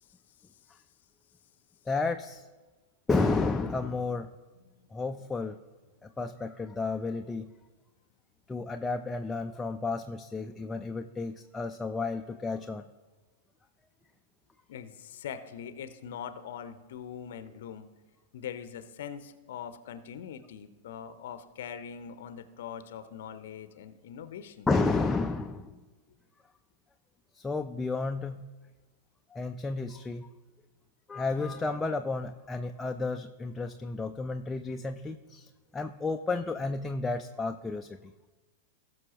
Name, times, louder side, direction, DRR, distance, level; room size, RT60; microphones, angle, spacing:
voice 1, 1.9-2.5 3.1-4.3 4.9-5.6 6.0-7.5 8.5-12.8 24.7-25.7 27.3-28.4 29.3-30.3 31.1-37.9, left 3 dB, 10° left, 6 dB, 0.4 m, -32 dB
voice 2, 14.7-17.9 18.3-24.7, left 8 dB, 60° left, 11 dB, 0.7 m, -42 dB
18.5 x 6.2 x 3.0 m, 1.2 s
figure-of-eight pair, 95°, 0 cm